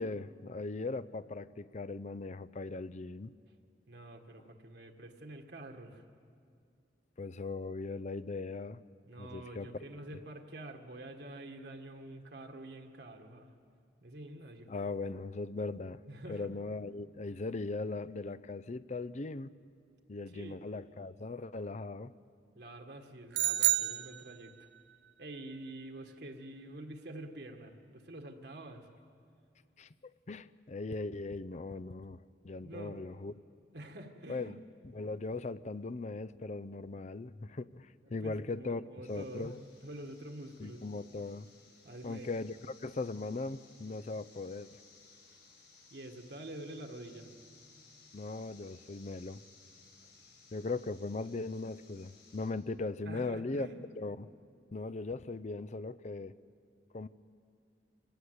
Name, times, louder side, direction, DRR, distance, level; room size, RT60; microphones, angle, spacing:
voice 1, 0.0-3.3 7.2-8.8 9.2-9.7 14.7-16.0 16.3-19.5 20.1-22.1 29.8-29.9 30.3-32.2 32.4-33.3 34.3-34.5 34.8-38.8 39.1-39.5 40.6-41.5 42.0-42.6 42.8-44.8 48.1-49.4 50.5-53.7 54.0-54.3 54.7-56.3 56.9-57.1, left 3 dB, 40° left, 16 dB, 0.5 m, -39 dB
voice 2, 3.9-6.0 9.0-13.5 14.0-14.7 16.1-16.6 17.3-17.4 20.3-20.6 22.5-24.7 25.2-28.9 32.6-33.0 33.7-34.6 38.0-39.6 39.8-40.8 41.8-42.3 45.9-47.3 53.1-53.8, right 1 dB, 65° right, 3 dB, 1.7 m, -47 dB
sound 1, 23.3-24.8, right 17 dB, 80° right, 0.5 m, -30 dB
sound 2, 39.0-52.5, left 4 dB, 70° left, 7.5 m, -61 dB
25.5 x 18.0 x 8.1 m, 2.3 s
head